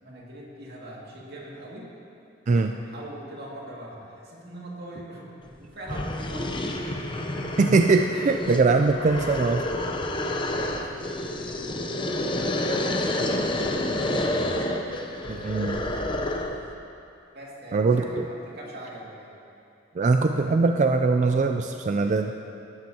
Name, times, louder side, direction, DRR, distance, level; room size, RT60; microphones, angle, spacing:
voice 1, 0.0-1.9 2.5-7.1 8.4-8.8 10.5-12.0 12.6-14.3 17.3-19.3, right 1 dB, 55° right, -4 dB, 2.2 m, -42 dB
sound 1, 5.5-5.6 5.9-16.7, left 1 dB, 25° left, 0.7 m, -29 dB
voice 2, 7.6-9.7 15.3-15.8 17.7-18.3 20.0-22.3, right 3 dB, 40° right, 5 dB, 0.3 m, -22 dB
17.0 x 12.0 x 2.8 m, 2.6 s
head